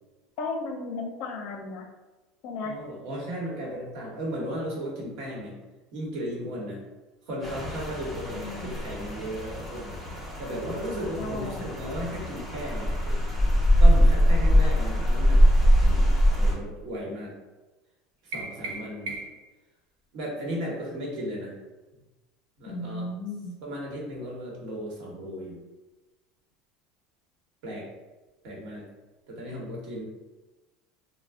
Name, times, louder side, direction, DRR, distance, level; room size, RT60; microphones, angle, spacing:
voice 1, 0.4-1.9 2.4-2.8 8.3-8.8 11.2-11.7 22.7-23.6, left 3 dB, 60° left, 2 dB, 0.5 m, -35 dB
voice 2, 2.6-5.6 5.9-6.8 7.2-10.0 10.4-13.2 13.8-15.4 15.8-17.4 18.2-19.1 20.1-21.6 22.6-23.1 23.6-25.6 27.6-27.9 28.4-28.8 29.3-30.0, equal, 65° right, -3 dB, 1.0 m, -35 dB
Rain, 7.4-16.5, equal, 5° right, 0.7 m, -22 dB
sound 1, 18.3-19.5, right 2 dB, 85° right, 0.5 m, -37 dB
2.4 x 2.0 x 3.5 m, 1.1 s
supercardioid pair, 130°, 0 cm